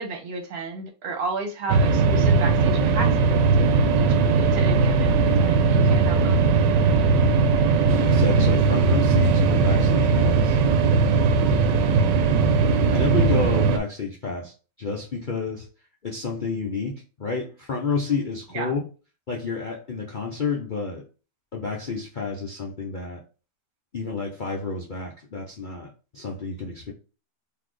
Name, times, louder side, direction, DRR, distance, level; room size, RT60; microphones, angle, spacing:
voice 1, 0.0-3.6 4.0-6.4 18.5-18.7, right 3 dB, 60° right, 1.5 m, -33 dB
sound 1, 1.7-13.8, right 4 dB, 80° right, 1.3 m, -19 dB
voice 2, 7.9-10.6 11.3-11.9 12.9-14.5 14.8-15.7 16.0-18.9 19.3-21.0 21.5-23.2 23.9-26.9, left 4 dB, 80° left, 0.4 m, -30 dB
4.0 x 3.1 x 3.1 m
omnidirectional pair, 1.9 m